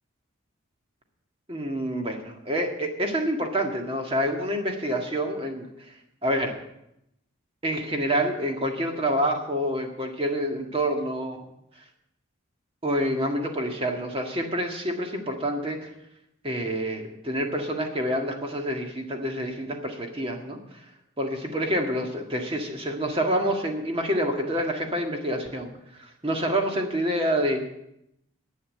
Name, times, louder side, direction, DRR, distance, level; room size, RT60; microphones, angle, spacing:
voice 1, 1.5-5.7 6.2-6.5 7.6-11.4 12.8-15.9 16.4-20.8 21.2-27.7, equal, 25° right, 3 dB, 1.8 m, -27 dB
11.5 x 8.5 x 8.5 m, 0.83 s
head